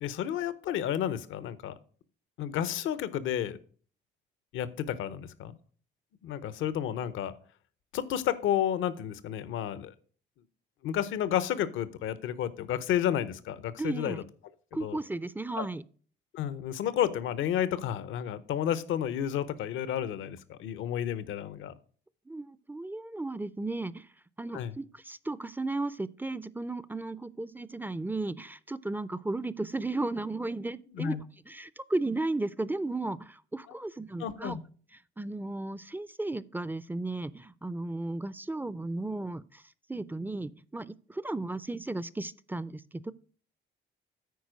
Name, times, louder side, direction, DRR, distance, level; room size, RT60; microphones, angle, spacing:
voice 1, 0.0-1.7 2.4-3.6 4.5-5.6 6.2-7.4 7.9-9.9 10.8-14.2 14.8-15.0 15.6-15.7 16.3-21.7 24.5-24.7 30.9-31.2 34.2-34.6, left 10 dB, 80° left, 16 dB, 0.7 m, -31 dB
voice 2, 13.8-14.2 14.7-15.8 22.3-24.1 24.4-31.2 31.5-34.6 35.2-39.6 39.9-43.1, right 2 dB, 10° right, 18 dB, 0.4 m, -35 dB
9.4 x 4.5 x 6.2 m, 0.43 s
cardioid pair, 90°, 20 cm